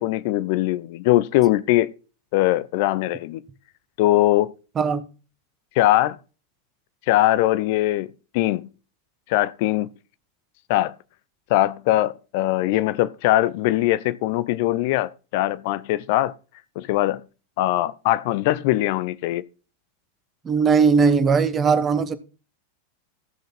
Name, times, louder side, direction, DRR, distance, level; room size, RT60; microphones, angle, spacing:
voice 1, 0.0-1.9 2.3-3.4 4.0-4.5 5.8-6.2 7.1-8.7 9.3-9.9 10.7-10.9 11.5-16.3 16.8-17.2 17.6-19.4, left 15 dB, 50° left, 0.5 m, -21 dB
voice 2, 20.4-22.1, right 5 dB, 20° right, 1.2 m, -19 dB
15.0 x 6.5 x 4.2 m
figure-of-eight pair, 90°, 0 cm